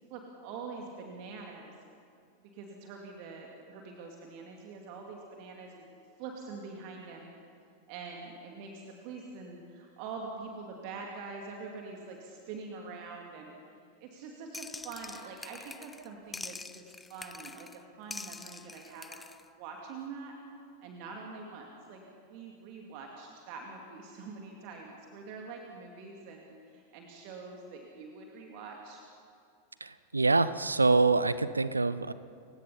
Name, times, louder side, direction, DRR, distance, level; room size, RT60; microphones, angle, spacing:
voice 1, 0.1-1.7 2.5-7.3 7.9-13.5 14.0-19.2 19.6-20.4 20.8-22.0 22.3-29.0, right 4 dB, 45° right, 1 dB, 2.4 m, -45 dB
sound 1, 14.5-16.1 16.3-17.8 18.1-19.4, left 3 dB, 10° left, 0.6 m, -45 dB
voice 2, 29.8-32.1, right 3 dB, 80° right, 15 dB, 0.8 m, -25 dB
30.0 x 16.5 x 5.7 m, 2.5 s
figure-of-eight pair, 90°, 0 cm